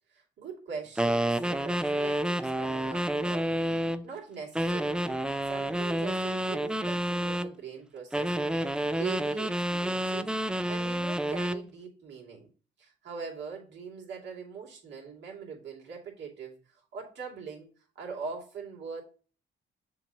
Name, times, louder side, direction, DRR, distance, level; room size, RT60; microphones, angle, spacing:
voice 1, 0.1-10.3 10.6-12.5 12.8-17.7 17.9-19.0, right 6 dB, 65° right, 2.7 m, -42 dB
sound 1, 1.0-4.0 4.5-7.5 8.1-11.6, right 1 dB, 5° right, 0.4 m, -29 dB
6.9 x 3.0 x 5.5 m
cardioid pair, 90°, 20 cm